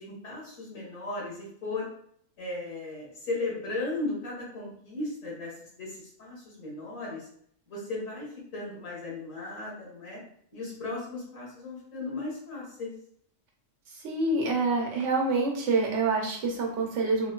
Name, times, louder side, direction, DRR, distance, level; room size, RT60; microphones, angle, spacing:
voice 1, 0.0-1.9 2.4-7.3 7.7-8.3 8.5-10.2 10.5-12.9, left 2 dB, 75° left, -5 dB, 1.8 m, -36 dB
voice 2, 13.9-17.3, right 3 dB, 70° right, 0 dB, 1.1 m, -26 dB
3.8 x 2.6 x 2.2 m, 0.63 s
omnidirectional pair, 1.4 m